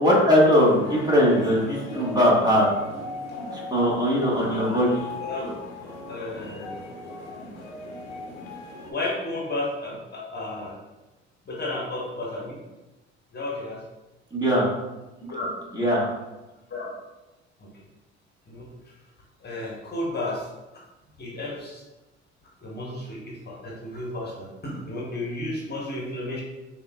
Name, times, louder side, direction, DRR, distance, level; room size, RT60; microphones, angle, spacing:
voice 1, 0.0-2.7 3.5-4.9 14.3-14.6 15.7-16.1, equal, 10° right, -5 dB, 1.4 m, -20 dB
sound 1, 0.6-8.9, left 2 dB, 75° left, 0.9 m, -37 dB
voice 2, 4.5-4.8 5.2-5.5 6.1-6.8 8.9-10.7 11.5-12.6 13.3-13.8 15.3-15.5 16.7-16.9 18.5-18.7 19.4-20.4 21.2-21.8 22.6-26.4, left 2 dB, 30° left, -3 dB, 1.2 m, -32 dB
6.8 x 2.6 x 2.3 m, 1.1 s
figure-of-eight pair, 60°, 34 cm